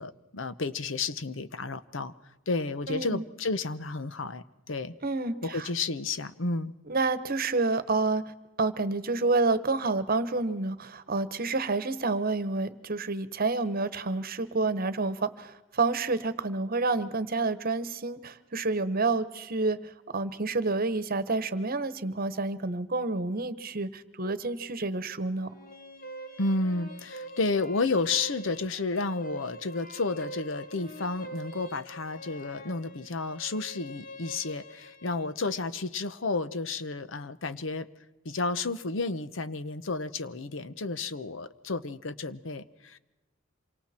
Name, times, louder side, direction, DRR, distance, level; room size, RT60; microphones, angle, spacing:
voice 1, 0.0-2.1 2.5-5.0 5.4-6.7 26.4-37.9 38.2-43.0, left 3 dB, 70° left, 14 dB, 0.9 m, -31 dB
voice 2, 2.9-3.3 5.0-5.7 6.9-8.2 8.6-25.5, right 3 dB, 50° right, 13 dB, 1.2 m, -29 dB
sound 1, 25.4-35.4, right 1 dB, 45° left, 2.0 m, -44 dB
27.0 x 24.5 x 4.4 m, 1.1 s
head